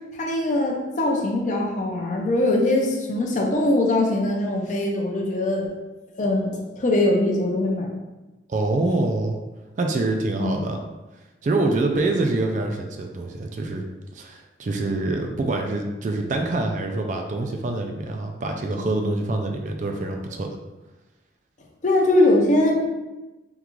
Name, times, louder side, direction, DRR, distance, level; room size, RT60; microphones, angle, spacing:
voice 1, 0.1-5.7 6.2-6.5 6.8-7.9 10.4-10.5 21.8-22.8, left 1 dB, 40° left, 0 dB, 0.5 m, -21 dB
voice 2, 8.5-9.4 9.8-10.8 11.4-13.9 14.1-20.5, right 2 dB, 40° right, 3 dB, 0.3 m, -25 dB
3.6 x 2.3 x 3.0 m, 1.1 s
head